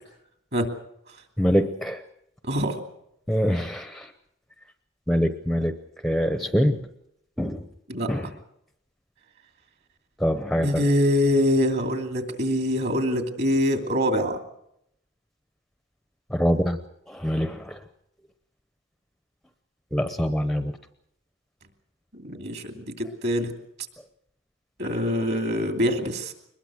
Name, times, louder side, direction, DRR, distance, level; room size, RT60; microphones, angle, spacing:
voice 1, 1.4-2.0 3.3-4.1 5.1-5.8 6.0-6.8 7.4-7.7 8.1-8.3 10.2-10.9 16.3-16.8 17.1-17.8 19.9-20.7, equal, ahead, 9 dB, 0.7 m, -24 dB
voice 2, 2.4-2.8 7.9-8.1 10.6-14.4 22.1-23.5 24.8-26.3, equal, 50° right, 5 dB, 2.8 m, -24 dB
23.0 x 21.0 x 6.3 m, 0.76 s
head